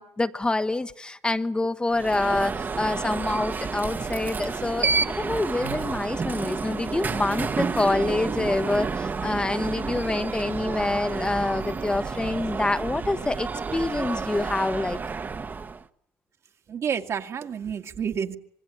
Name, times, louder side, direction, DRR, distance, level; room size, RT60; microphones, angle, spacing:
voice 1, 0.0-15.0, left 2 dB, 15° left, 1.1 m, -26 dB
Alarm, 1.9-15.8, right 4 dB, 30° right, 1.2 m, -30 dB
Sigh, 5.6-6.1, right 13 dB, 90° right, 1.3 m, -38 dB
voice 2, 16.7-18.4, right 7 dB, 50° right, 2.0 m, -29 dB
26.0 x 20.5 x 9.9 m
supercardioid pair, 85°, 6 cm